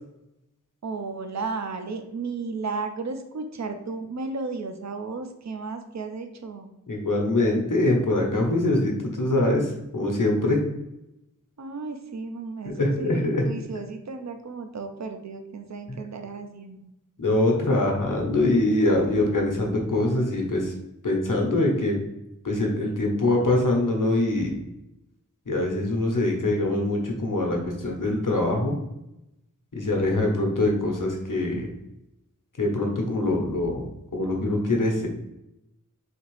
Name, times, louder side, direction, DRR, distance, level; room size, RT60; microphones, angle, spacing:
voice 1, 0.8-6.7 11.6-16.9, right 4 dB, 60° right, 6 dB, 0.5 m, -34 dB
voice 2, 6.9-10.6 12.6-13.4 17.2-20.7 21.0-22.0 22.4-24.5 25.5-28.8 29.7-31.7 32.6-35.1, left 2 dB, 80° left, 0 dB, 1.0 m, -23 dB
4.1 x 3.0 x 3.1 m, 0.87 s
wide cardioid pair, 45°, 31 cm